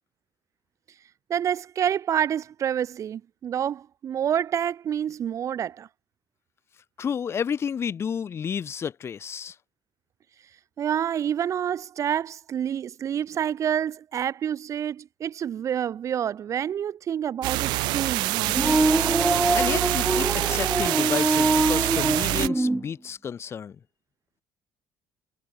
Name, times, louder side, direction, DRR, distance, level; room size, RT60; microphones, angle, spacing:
voice 1, 1.3-5.9 10.8-18.7, right 9 dB, 45° right, 3.3 m, -28 dB
voice 2, 7.0-9.6 19.5-23.8, left 7 dB, 35° left, 2.4 m, -31 dB
sound 1, 17.4-22.5, right 21 dB, 85° right, 1.8 m, -26 dB
sound 2, 18.5-22.8, right 2 dB, 10° right, 2.1 m, -24 dB
cardioid pair, 125°, 7 cm